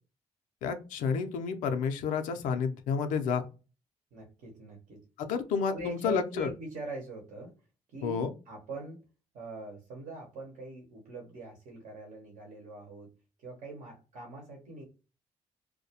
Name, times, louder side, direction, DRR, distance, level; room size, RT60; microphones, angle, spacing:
voice 1, 0.6-3.4 5.2-6.5 8.0-8.3, left 6 dB, 85° left, 7 dB, 0.4 m, -30 dB
voice 2, 4.1-5.0 5.7-7.5 7.9-8.2 8.5-9.0 9.3-13.1 13.4-14.8, right 2 dB, 80° right, -1 dB, 0.9 m, -42 dB
2.3 x 2.1 x 2.7 m, 0.32 s
supercardioid pair, 65°, 13 cm